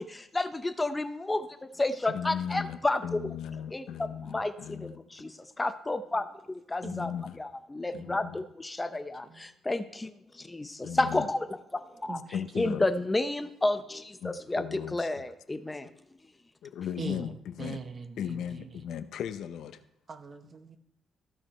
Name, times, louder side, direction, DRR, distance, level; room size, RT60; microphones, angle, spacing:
voice 1, 0.0-1.5 1.8-3.2 3.7-7.1 7.4-11.4 12.0-12.2 12.6-15.9, left 2 dB, 15° left, 10 dB, 0.8 m, -31 dB
voice 2, 2.1-5.0 6.8-7.4 7.9-8.4 10.8-11.3 12.3-12.9 14.2-15.2 16.6-17.8 18.2-19.8, left 9 dB, 75° left, 11 dB, 0.6 m, -37 dB
voice 3, 7.9-8.3 9.2-9.4 12.1-12.2 17.0-17.3 17.6-18.2 20.1-20.8, right 4 dB, 40° right, 9 dB, 1.0 m, -41 dB
15.0 x 5.0 x 4.4 m, 0.77 s
cardioid pair, 90°, 0 cm